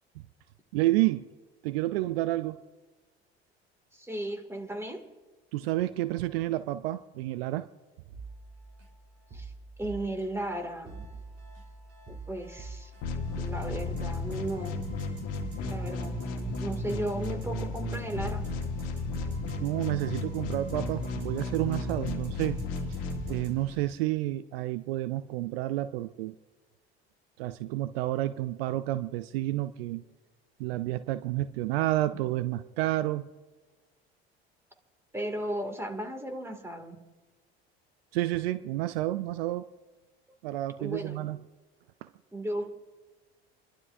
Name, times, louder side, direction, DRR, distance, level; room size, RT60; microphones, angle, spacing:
voice 1, 0.7-1.3 1.6-2.6 5.5-7.7 19.6-22.6 23.3-26.3 27.4-30.0 30.6-33.3 38.1-39.7 40.4-41.4 42.0-42.1, right 16 dB, 70° right, 14 dB, 0.5 m, -30 dB
voice 2, 3.9-5.0 9.3-9.5 9.8-11.2 12.1-12.9 13.4-14.8 15.6-18.4 35.1-37.0 40.8-41.3 42.3-42.7, right 1 dB, 10° right, 4 dB, 2.3 m, -35 dB
sound 1, 8.1-23.5, right 3 dB, 45° right, 4.0 m, -47 dB
sound 2, 13.0-23.9, left 2 dB, 55° left, 1.7 m, -34 dB
29.5 x 12.0 x 2.7 m, 1.2 s
hypercardioid pair, 65°, 31 cm